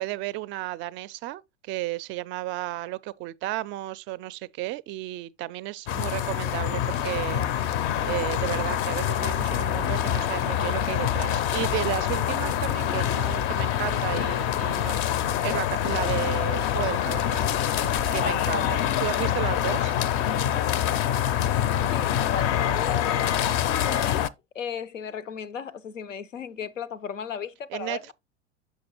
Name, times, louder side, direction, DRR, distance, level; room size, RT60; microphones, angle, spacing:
voice 1, 0.0-15.0 15.4-19.9 27.7-28.1, right 17 dB, 35° right, 0.4 m, -33 dB
sound 1, 5.9-24.3, left 10 dB, 40° left, 0.5 m, -25 dB
voice 2, 21.9-24.3 24.5-28.0, left 7 dB, 85° left, 0.6 m, -35 dB
6.2 x 5.8 x 2.9 m
figure-of-eight pair, 80°, 37 cm